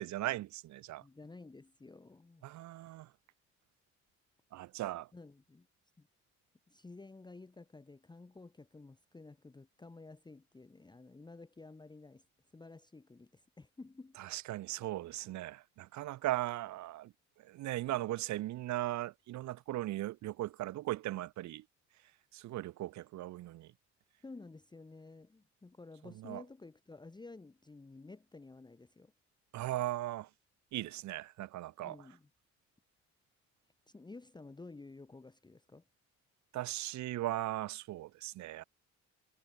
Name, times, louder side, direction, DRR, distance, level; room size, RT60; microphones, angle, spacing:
voice 1, 0.0-1.0 2.4-3.1 4.5-5.1 14.2-17.1 17.4-21.6 22.3-23.7 26.2-26.4 29.5-30.3 30.7-32.0 36.5-38.6, right 15 dB, 70° right, 0.6 m, -38 dB
voice 2, 1.0-2.5 5.1-5.7 6.0-6.1 6.7-12.3 12.5-14.2 24.2-29.1 31.8-32.3 33.9-35.8, left 3 dB, 15° left, 0.9 m, -52 dB
cardioid pair, 90°, 30 cm